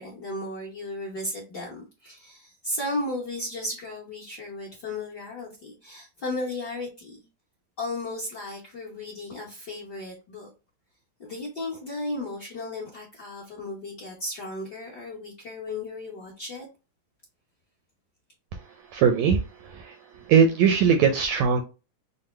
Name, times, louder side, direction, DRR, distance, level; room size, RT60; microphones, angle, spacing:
voice 1, 0.0-7.2 7.8-10.5 11.2-16.7, left 2 dB, 55° left, -3 dB, 1.1 m, -35 dB
voice 2, 18.9-21.6, right 6 dB, 80° right, 6 dB, 1.6 m, -21 dB
5.6 x 2.1 x 3.1 m, 0.30 s
omnidirectional pair, 3.6 m